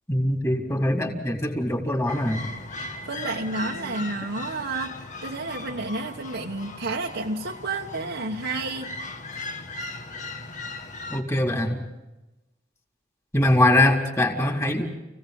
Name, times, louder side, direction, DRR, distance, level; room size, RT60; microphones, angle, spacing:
voice 1, 0.1-2.5 3.2-3.3 11.1-11.8 13.3-15.0, left 1 dB, 15° left, 1 dB, 4.0 m, -23 dB
sound 1, 2.1-11.2, left 3 dB, 40° left, 1.9 m, -38 dB
voice 2, 3.1-8.9, right 3 dB, 65° right, -1 dB, 1.5 m, -31 dB
30.0 x 17.5 x 5.5 m, 1.0 s
head